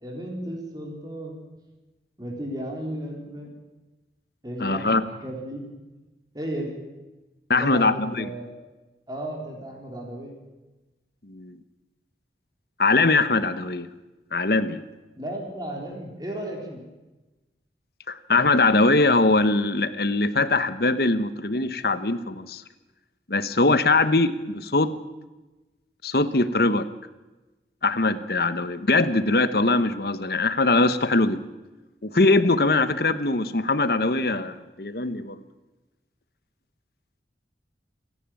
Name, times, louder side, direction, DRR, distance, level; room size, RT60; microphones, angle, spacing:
voice 1, 0.0-1.4 2.2-3.5 4.4-5.9 6.3-6.8 7.6-8.5 9.1-10.3 15.1-16.8, right 1 dB, 20° right, 0 dB, 3.9 m, -34 dB
voice 2, 4.6-5.0 7.5-8.3 11.3-11.6 12.8-13.9 14.3-14.8 18.1-22.6 23.3-24.9 26.0-26.8 27.8-31.4 32.0-35.4, left 2 dB, 55° left, 12 dB, 1.1 m, -22 dB
29.0 x 11.0 x 9.0 m, 1.1 s
head